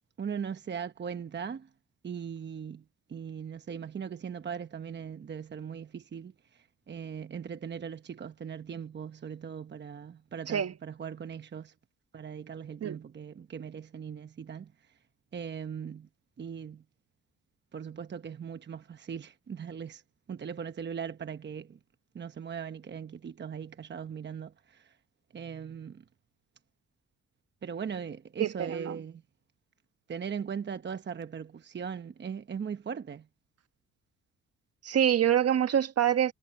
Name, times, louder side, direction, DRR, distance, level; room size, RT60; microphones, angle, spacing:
voice 1, 0.2-1.7 2.0-2.8 3.1-11.7 12.1-14.7 15.3-16.1 16.4-16.8 17.7-20.0 20.3-21.8 22.1-25.0 25.3-26.0 27.6-29.2 30.1-33.3, right 7 dB, 35° right, 1.0 m, -39 dB
voice 2, 28.4-29.0 34.8-36.3, right 10 dB, 55° right, 1.4 m, -26 dB
cardioid pair, 90°, 30 cm